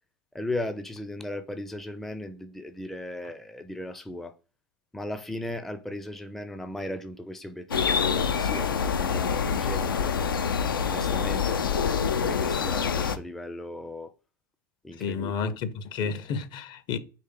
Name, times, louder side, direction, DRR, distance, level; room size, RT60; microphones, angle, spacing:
voice 1, 0.3-4.3 4.9-10.1 10.8-11.7 12.1-14.1 14.8-15.6, left 1 dB, ahead, 0.4 m, -37 dB
sound 1, 7.7-13.2, left 6 dB, 85° left, 0.5 m, -26 dB
voice 2, 15.0-17.0, left 5 dB, 45° left, 0.7 m, -31 dB
4.2 x 3.1 x 3.7 m
hypercardioid pair, 90°, 11 cm